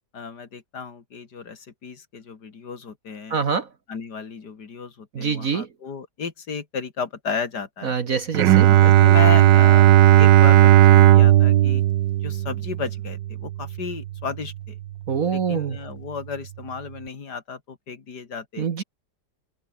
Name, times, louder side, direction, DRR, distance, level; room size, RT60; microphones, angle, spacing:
voice 1, 0.1-3.4 3.9-7.9 8.5-11.8 12.2-14.8 15.3-18.7, left 5 dB, 60° left, 3.0 m, -33 dB
voice 2, 3.3-3.7 5.1-5.7 7.8-8.7 15.1-15.8 18.6-18.8, right 6 dB, 50° right, 1.6 m, -25 dB
Bowed string instrument, 8.3-14.1, right 13 dB, 75° right, 1.4 m, -15 dB
omnidirectional pair, 2.0 m